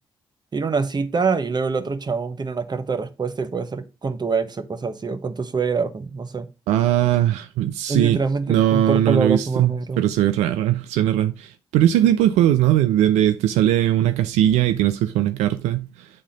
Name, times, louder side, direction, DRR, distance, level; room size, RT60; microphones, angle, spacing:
voice 1, 0.5-6.5 7.9-10.0, right 4 dB, 40° right, 1.2 m, -25 dB
voice 2, 6.7-8.2 8.5-16.1, right 12 dB, 80° right, 0.4 m, -19 dB
8.7 x 3.6 x 5.1 m
hypercardioid pair, 45°, 11 cm